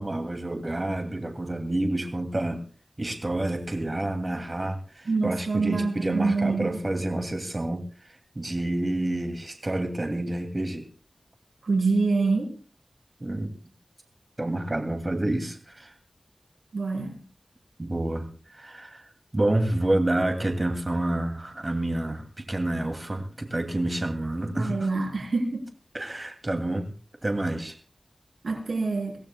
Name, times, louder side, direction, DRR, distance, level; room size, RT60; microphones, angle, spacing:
voice 1, 0.0-2.6 3.0-10.9 13.2-13.5 14.4-15.9 17.8-24.9 25.9-26.9 27.2-27.8, right 1 dB, 35° right, 5 dB, 2.4 m, -29 dB
voice 2, 5.1-6.8 11.6-12.5 16.7-17.2 24.5-25.7 28.4-29.2, right 3 dB, 90° right, 2 dB, 3.6 m, -26 dB
23.5 x 16.5 x 2.2 m, 0.37 s
wide cardioid pair, 55°, 0 cm